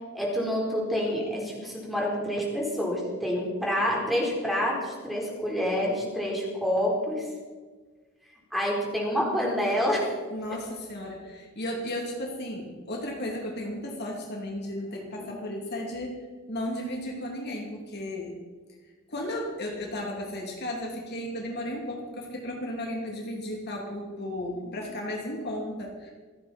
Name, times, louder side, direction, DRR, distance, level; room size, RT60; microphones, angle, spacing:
voice 1, 0.1-7.3 8.5-10.0 15.2-15.4 24.5-24.8, equal, ahead, -3 dB, 4.3 m, -28 dB
voice 2, 10.3-16.1 16.5-18.4 19.1-26.1, left 1 dB, 50° left, -1 dB, 2.8 m, -34 dB
27.5 x 9.5 x 4.4 m, 1.4 s
head